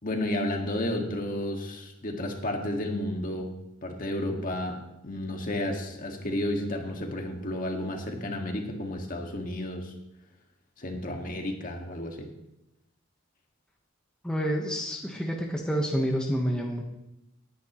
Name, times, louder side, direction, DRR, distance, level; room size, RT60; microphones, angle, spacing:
voice 1, 0.0-3.5 3.8-9.9 10.8-12.3, left 1 dB, 40° left, 2 dB, 1.9 m, -32 dB
voice 2, 14.2-16.8, equal, 5° left, -1 dB, 1.2 m, -28 dB
18.5 x 10.0 x 3.1 m, 0.88 s
head